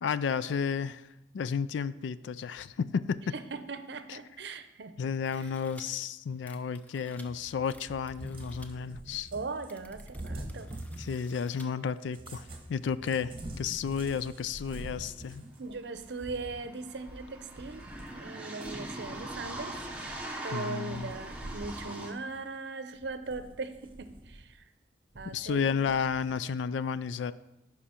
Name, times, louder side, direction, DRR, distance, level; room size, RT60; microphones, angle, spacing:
voice 1, 0.0-1.1 1.3-3.4 4.1-4.2 5.0-9.3 11.0-15.4 20.5-21.1 25.3-27.3, left 6 dB, 80° left, 16 dB, 0.3 m, -32 dB
voice 2, 3.3-4.9 9.3-10.8 15.6-17.9 18.1-19.8 20.4-24.6 25.1-25.7, right 3 dB, 70° right, 10 dB, 0.6 m, -39 dB
sound 1, 5.2-5.8 6.4-7.3 7.7-8.7 9.3-9.4 9.6-11.7 12.2-12.3, left 1 dB, 10° left, 0.4 m, -55 dB
Cat, 7.3-11.5 12.1-18.2 18.6-20.5 20.9-21.9 22.3-22.4 23.0-24.5 25.1-26.3, right 1 dB, 30° right, 1.0 m, -46 dB
sound 2, 15.6-15.7 15.9-22.1, right 1 dB, 5° right, 0.9 m, -41 dB
10.5 x 4.9 x 4.4 m, 0.91 s
head